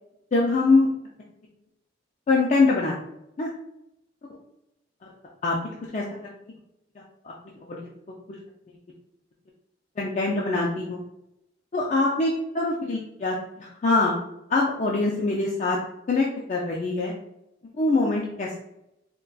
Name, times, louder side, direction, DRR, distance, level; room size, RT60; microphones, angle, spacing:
voice 1, 0.3-0.9 2.3-2.9 3.4-3.5 5.4-5.6 5.9-6.0 7.0-7.3 7.6-7.9 10.0-11.0 11.7-14.1 14.5-15.8 16.1-17.1 17.8-18.6, left 3 dB, 40° left, -3 dB, 0.4 m, -23 dB
3.8 x 2.2 x 2.3 m, 0.83 s
head